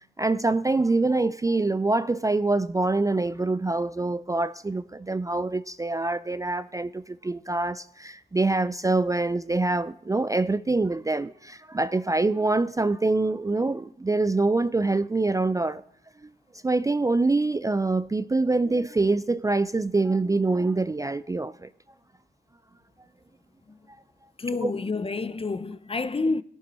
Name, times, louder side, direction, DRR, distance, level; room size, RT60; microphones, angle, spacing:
voice 1, 0.0-15.8 16.6-21.7 24.6-24.7, right 3 dB, 20° right, 0.3 m, -25 dB
voice 2, 24.4-26.4, left 3 dB, 30° left, 0.6 m, -28 dB
17.0 x 6.9 x 4.2 m
cardioid pair, 40°, 19 cm